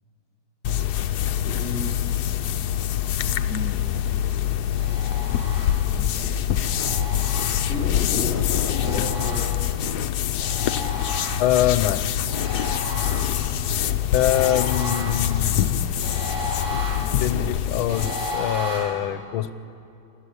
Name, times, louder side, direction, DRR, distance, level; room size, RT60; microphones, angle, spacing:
sound 1, 0.6-18.4, left 10 dB, 65° left, 1.1 m, -25 dB
voice 1, 1.4-2.3 3.4-3.9 7.7-9.5, left 2 dB, 25° right, -2 dB, 4.3 m, -33 dB
sound 2, 4.8-6.0 6.6-8.0 8.5-9.9 10.4-11.7 12.3-18.8, left 1 dB, 85° right, 5.4 m, -34 dB
voice 2, 11.4-12.0 14.1-15.6 17.2-19.5, left 12 dB, 85° left, 13 dB, 1.5 m, -24 dB
28.5 x 12.5 x 8.4 m, 2.7 s
omnidirectional pair, 2.2 m